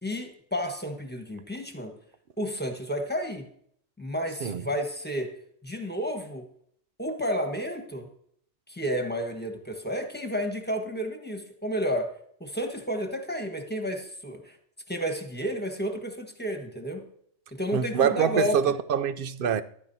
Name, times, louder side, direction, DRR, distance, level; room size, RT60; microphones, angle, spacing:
voice 1, 0.0-1.9 2.4-3.4 4.0-5.3 5.6-6.4 7.0-8.1 8.7-12.1 12.4-14.6 14.9-17.1 17.5-18.6, equal, 10° left, 1.4 m, -31 dB
voice 2, 17.7-19.6, right 8 dB, 60° right, 0.7 m, -25 dB
15.5 x 12.0 x 2.8 m
omnidirectional pair, 1.2 m